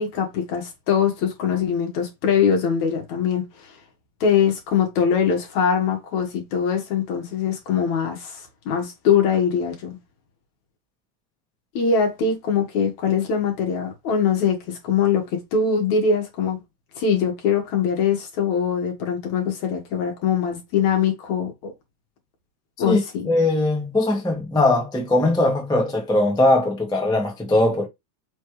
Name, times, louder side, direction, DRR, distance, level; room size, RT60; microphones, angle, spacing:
voice 1, 0.0-3.7 4.2-10.0 11.7-16.6 17.0-21.7 22.8-23.3, left 6 dB, 60° left, 2.7 m, -22 dB
voice 2, 22.8-27.9, left 1 dB, ahead, 0.9 m, -20 dB
5.9 x 3.3 x 4.8 m
omnidirectional pair, 3.9 m